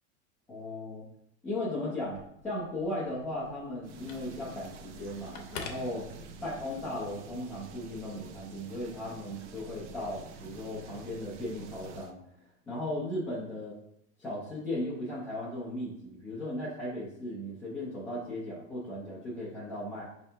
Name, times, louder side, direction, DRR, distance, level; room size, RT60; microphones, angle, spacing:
voice 1, 0.5-1.0 1.4-2.2 2.4-6.0 6.4-12.2 12.7-13.8 14.2-20.0, left 1 dB, 5° left, -10 dB, 0.4 m, -36 dB
Telephone, 2.0-6.7, left 5 dB, 60° left, 0.8 m, -48 dB
sound 1, 3.8-12.1, right 5 dB, 75° right, 0.6 m, -48 dB
5.1 x 2.8 x 3.3 m, 0.75 s
supercardioid pair, 175°, 35 cm